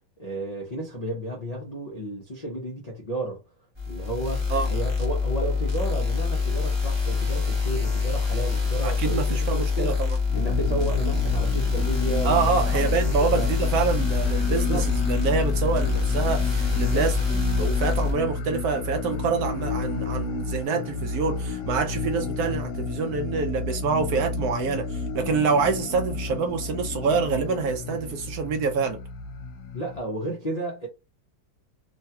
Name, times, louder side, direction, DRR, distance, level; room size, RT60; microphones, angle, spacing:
voice 1, 0.2-3.4 3.9-10.0 10.3-13.5 14.5-14.9 16.7-17.1 29.7-30.9, right 1 dB, 50° left, 0.4 m, -33 dB
sound 1, 3.8-18.1, left 4 dB, 20° right, 0.8 m, -25 dB
voice 2, 8.8-10.2 12.2-29.0, right 5 dB, 70° right, 1.0 m, -26 dB
sound 2, 10.3-30.0, left 4 dB, 80° left, 1.2 m, -32 dB
3.2 x 2.2 x 2.7 m
omnidirectional pair, 1.9 m